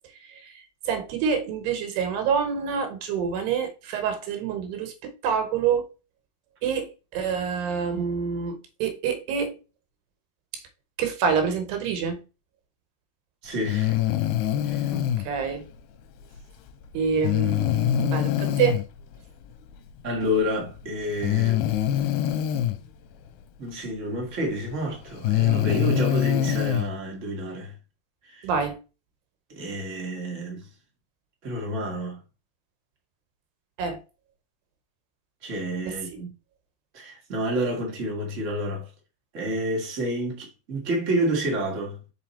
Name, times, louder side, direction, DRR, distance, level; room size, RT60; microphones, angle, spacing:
voice 1, 0.9-5.8 6.6-9.6 11.0-12.2 15.2-15.6 16.9-18.8 28.4-28.8 33.8-34.0 35.9-36.0, right 6 dB, 80° right, 3.1 m, -27 dB
voice 2, 13.4-14.0 14.6-14.9 20.0-21.7 23.6-27.7 28.2-28.5 29.5-30.7 31.4-32.2 35.4-36.3 36.9-38.9 39.3-42.0, equal, 60° right, 0.7 m, -29 dB
Breathing, 13.7-15.3 17.2-18.8 20.2-20.3 21.2-22.8 24.3-24.4 25.1-26.9, left 11 dB, 90° left, 2.8 m, -24 dB
5.9 x 4.9 x 4.2 m
omnidirectional pair, 4.8 m